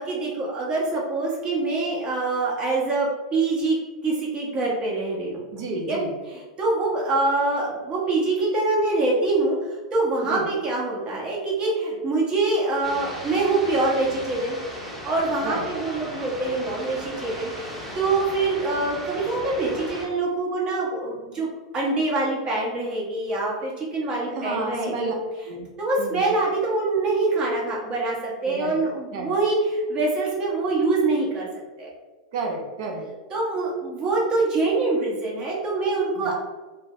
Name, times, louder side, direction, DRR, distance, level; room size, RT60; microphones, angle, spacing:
voice 1, 0.0-3.8 4.0-5.4 5.9-6.0 6.3-14.6 15.0-21.5 21.7-25.1 25.8-31.5 31.8-31.9 33.3-36.3, right 3 dB, 30° right, -4 dB, 0.9 m, -25 dB
voice 2, 5.5-6.2 10.2-10.5 15.4-15.7 24.3-25.1 25.4-25.7 26.0-26.3 28.4-28.8 29.1-29.3 32.3-33.1 36.1-36.3, right 3 dB, 55° right, 1 dB, 0.6 m, -31 dB
sound 1, 12.8-20.1, equal, ahead, 0.9 m, -37 dB
2.6 x 2.1 x 3.1 m, 1.2 s
hypercardioid pair, 95°, 3 cm